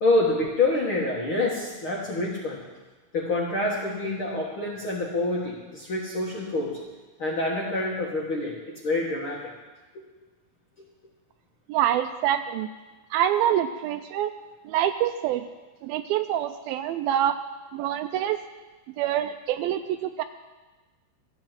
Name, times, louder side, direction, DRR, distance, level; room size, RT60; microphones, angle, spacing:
voice 1, 0.0-2.6 3.1-6.7 7.2-9.4 9.9-10.0, left 2 dB, 50° left, -3 dB, 1.7 m, -27 dB
voice 2, 11.7-12.7 13.1-14.3 14.7-15.4 15.8-17.4 17.7-18.4 19.0-20.2, right 11 dB, 80° right, 9 dB, 2.2 m, -26 dB
13.5 x 8.7 x 7.5 m, 1.2 s
omnidirectional pair, 4.5 m